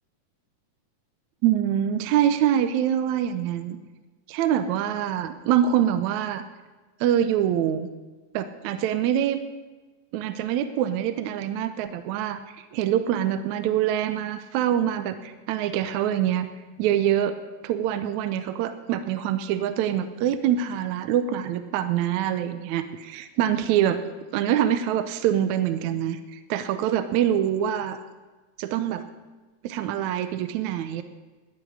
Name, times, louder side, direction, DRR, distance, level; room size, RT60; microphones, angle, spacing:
voice 1, 1.4-3.8 4.3-6.4 7.0-7.9 8.3-9.4 10.1-12.4 12.7-16.5 16.8-17.3 17.6-24.0 24.3-28.0 28.6-29.0 29.6-31.0, right 10 dB, 75° right, 10 dB, 1.7 m, -25 dB
11.5 x 8.3 x 9.9 m, 1.3 s
omnidirectional pair, 4.0 m